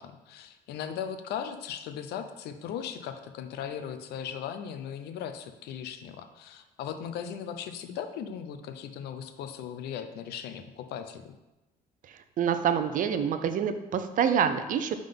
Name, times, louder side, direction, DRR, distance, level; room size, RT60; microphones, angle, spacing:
voice 1, 0.0-11.2, left 8 dB, 75° left, 8 dB, 0.6 m, -38 dB
voice 2, 12.4-15.0, right 8 dB, 50° right, 9 dB, 0.6 m, -26 dB
5.5 x 3.8 x 5.2 m, 1.0 s
cardioid pair, 110°, 17 cm